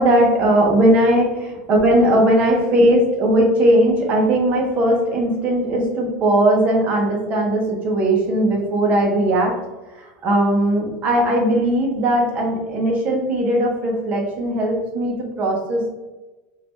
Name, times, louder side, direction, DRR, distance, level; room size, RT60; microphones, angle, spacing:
voice 1, 0.0-9.5 10.0-15.9, right 1 dB, 35° right, -1 dB, 1.1 m, -18 dB
4.2 x 2.6 x 3.1 m, 1.1 s
supercardioid pair, 135°, 4 cm